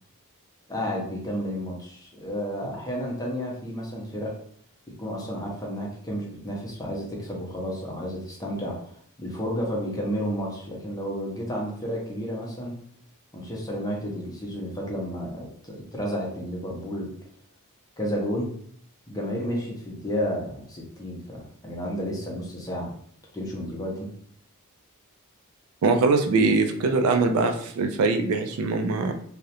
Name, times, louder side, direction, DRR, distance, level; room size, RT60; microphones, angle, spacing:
voice 1, 0.7-4.3 5.0-8.9 9.2-12.8 13.3-17.1 18.0-18.5 19.1-22.9 23.3-24.1, equal, 15° left, -2 dB, 0.6 m, -31 dB
voice 2, 25.8-29.1, right 3 dB, 70° right, 5 dB, 0.3 m, -22 dB
2.4 x 2.0 x 2.8 m, 0.62 s
head